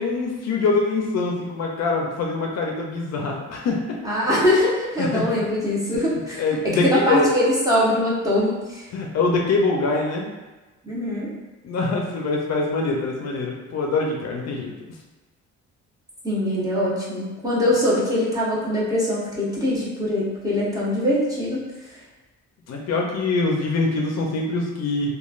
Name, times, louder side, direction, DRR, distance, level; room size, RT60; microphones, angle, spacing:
voice 1, 0.0-4.0 5.0-5.3 6.4-7.3 8.9-10.3 11.6-14.7 22.7-25.1, left 3 dB, 60° left, 0 dB, 0.5 m, -24 dB
voice 2, 4.0-8.9 10.8-11.3 16.2-21.6, left 1 dB, 10° right, -7 dB, 0.9 m, -22 dB
3.0 x 2.3 x 2.4 m, 1.2 s
cardioid pair, 90°, 30 cm